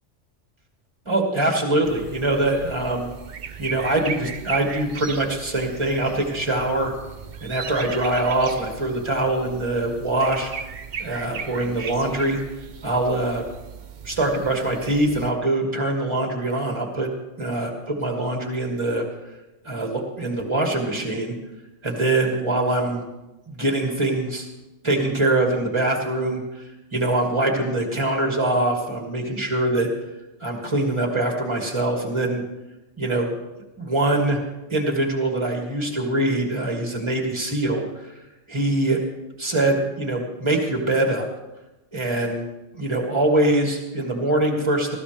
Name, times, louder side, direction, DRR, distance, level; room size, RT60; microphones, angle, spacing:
voice 1, 1.1-3.1 3.6-6.9 7.4-10.5 11.0-12.4 12.8-13.4 14.0-17.1 17.4-19.0 19.6-21.3 21.8-23.0 23.5-24.5 24.8-26.4 26.9-29.9 30.4-32.4 33.0-33.3 33.8-34.4 34.7-38.1 38.5-39.0 39.4-41.3 41.9-42.5 42.7-45.0, right 2 dB, 20° right, 1 dB, 2.7 m, -23 dB
sound 1, 1.8-15.3, right 6 dB, 45° right, 0.7 m, -37 dB
19.5 x 15.5 x 3.5 m, 1.0 s
omnidirectional pair, 1.3 m